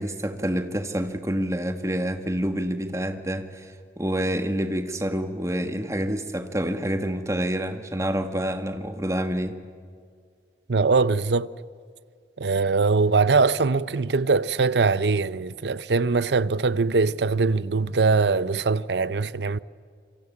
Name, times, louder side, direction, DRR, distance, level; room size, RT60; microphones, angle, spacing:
voice 1, 0.0-9.5, equal, 15° right, 1.6 m, -27 dB
voice 2, 10.7-11.5 12.4-19.6, right 4 dB, 80° right, 0.7 m, -22 dB
27.0 x 24.0 x 8.5 m
head